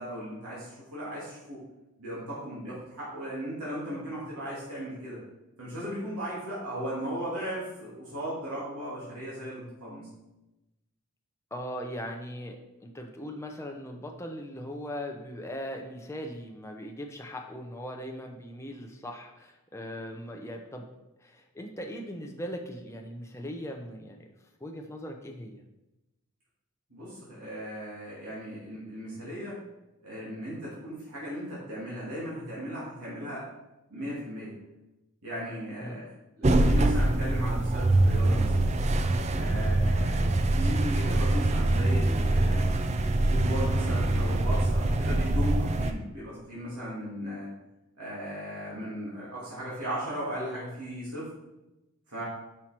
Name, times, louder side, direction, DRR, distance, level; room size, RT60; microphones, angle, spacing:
voice 1, 0.0-1.6 2.0-5.2 5.6-10.1 26.9-29.6 30.0-33.4 33.9-34.5 35.2-36.1 36.4-38.5 39.3-40.2 40.5-42.7 43.2-47.5 48.0-51.3 52.1-52.2, equal, 90° right, -8 dB, 2.6 m, -36 dB
voice 2, 11.5-20.9 21.2-24.3 24.6-25.6 35.8-36.0 40.2-40.3, equal, 10° left, 2 dB, 0.6 m, -39 dB
sound 1, 36.4-45.9, right 2 dB, 30° right, 0.4 m, -24 dB
6.1 x 5.5 x 4.4 m, 0.97 s
head